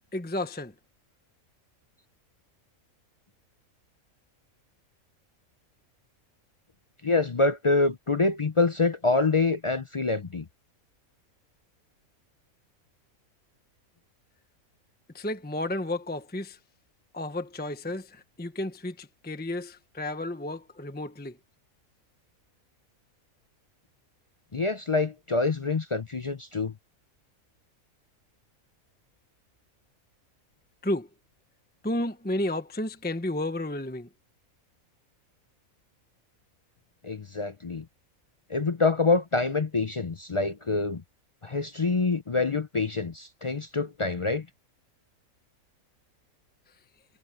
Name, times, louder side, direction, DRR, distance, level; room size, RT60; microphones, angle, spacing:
voice 1, 0.1-0.7 15.1-16.6 17.1-21.4 30.8-31.1 31.8-34.1, left 1 dB, 10° left, 0.9 m, -32 dB
voice 2, 7.0-10.5 24.5-26.7 37.0-37.9 38.5-41.0 41.4-44.5, left 3 dB, 45° left, 0.4 m, -26 dB
omnidirectional pair, 1.5 m